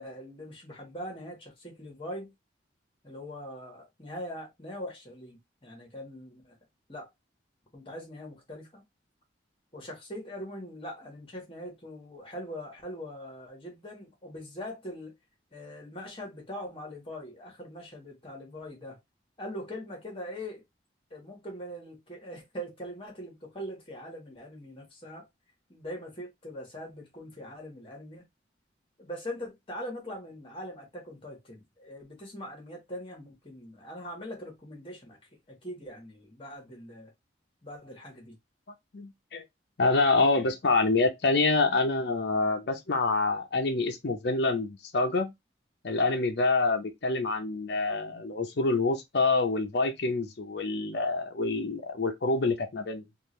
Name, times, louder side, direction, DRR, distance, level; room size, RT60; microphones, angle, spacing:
voice 1, 0.0-2.3 3.0-6.5 6.9-7.1 7.7-8.8 9.7-15.1 15.5-19.0 19.4-20.6 21.1-25.3 25.7-28.3 29.0-35.2 35.5-37.1 37.6-38.3, equal, 30° left, 1.5 m, -42 dB
voice 2, 38.9-39.4 39.8-45.3 45.8-53.0, left 3 dB, 60° left, 0.6 m, -26 dB
3.7 x 2.5 x 3.1 m
head